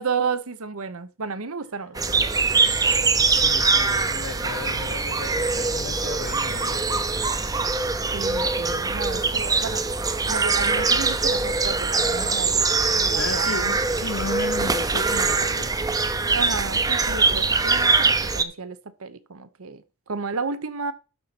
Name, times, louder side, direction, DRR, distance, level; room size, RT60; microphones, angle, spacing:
voice 1, 0.0-2.0 8.1-9.8 10.3-13.8 16.3-20.9, right 5 dB, 70° right, 0.9 m, -32 dB
sound 1, 2.0-18.4, right 4 dB, 15° right, 0.6 m, -23 dB
voice 2, 3.3-7.3 13.1-15.7, left 4 dB, 60° left, 0.8 m, -35 dB
12.0 x 4.2 x 5.9 m
head